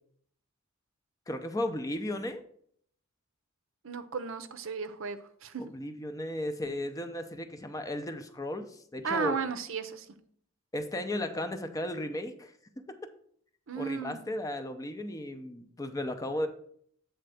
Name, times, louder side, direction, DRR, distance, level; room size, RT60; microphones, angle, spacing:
voice 1, 1.3-2.4 5.6-9.4 10.7-12.5 13.0-13.1 13.8-16.5, left 1 dB, 15° left, 8 dB, 0.5 m, -35 dB
voice 2, 3.8-5.6 9.0-10.1 13.7-14.2, right 5 dB, 70° right, 10 dB, 0.6 m, -34 dB
7.8 x 3.3 x 6.3 m, 0.64 s
head